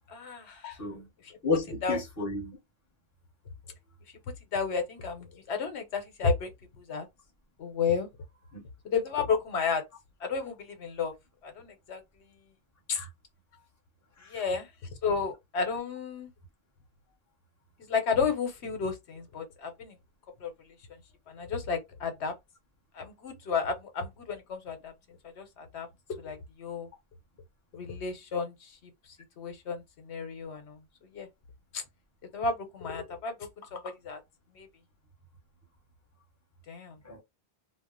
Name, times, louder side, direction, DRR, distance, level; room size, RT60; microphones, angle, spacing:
voice 1, 0.1-0.8 1.2-1.4 1.8-2.0 4.5-6.5 6.8-7.1 7.6-8.1 8.8-9.9 10.2-11.1 11.4-12.0 12.9-13.0 14.3-14.7 15.0-16.3 17.9-20.0 20.4-20.5 21.3-22.3 22.9-25.9 26.2-26.9 27.7-30.8 31.1-31.3 31.7-31.8 32.3-34.2 34.5-34.7 36.7-37.0, left 5 dB, 85° left, 1.1 m, -32 dB
voice 2, 1.4-2.6 8.5-8.6 12.9-13.1 14.2-14.4 37.0-37.2, left 3 dB, 15° left, 0.9 m, -32 dB
2.4 x 2.1 x 3.6 m
omnidirectional pair, 1.1 m